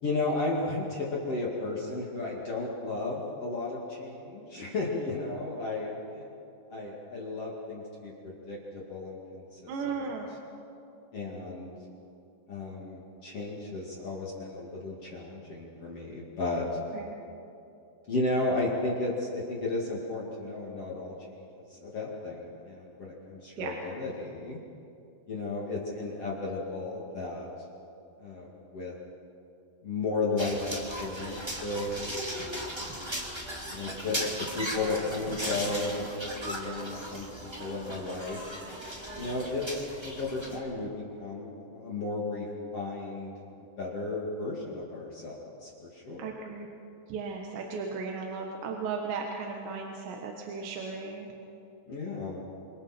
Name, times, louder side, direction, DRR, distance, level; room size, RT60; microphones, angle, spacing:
voice 1, 0.0-6.2 6.7-9.7 11.1-11.7 12.5-16.7 18.1-24.6 25.3-27.5 28.2-28.9 29.8-32.8 33.7-38.4 39.1-43.3 43.8-46.3 51.9-52.5, left 2 dB, 40° left, -4 dB, 2.8 m, -34 dB
voice 2, 9.7-10.3 16.9-17.2 23.6-23.8 46.2-46.7 47.1-51.3, right 5 dB, 85° right, 1 dB, 3.7 m, -36 dB
sound 1, 30.4-40.6, equal, 15° right, 1.0 m, -37 dB
28.5 x 27.0 x 4.5 m, 2.7 s
omnidirectional pair, 4.9 m